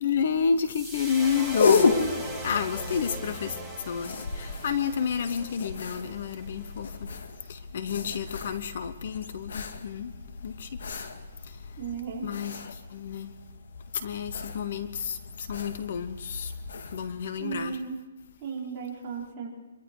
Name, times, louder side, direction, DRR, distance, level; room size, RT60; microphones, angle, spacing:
voice 1, 0.0-2.1 2.4-3.6 3.8-7.1 7.5-10.1 10.4-11.0 11.5-11.6 12.2-13.3 13.9-16.5 16.9-17.8, left 7 dB, 45° left, 12 dB, 1.0 m, -30 dB
sound 1, 0.6-7.0, right 1 dB, 5° left, 2.1 m, -40 dB
sound 2, 1.2-17.2, left 4 dB, 65° left, 2.2 m, -33 dB
voice 2, 11.8-12.3 17.4-18.0 18.4-19.5, right 6 dB, 20° right, -6 dB, 5.3 m, -35 dB
25.5 x 23.0 x 4.9 m, 1.2 s
hypercardioid pair, 170°, 0 cm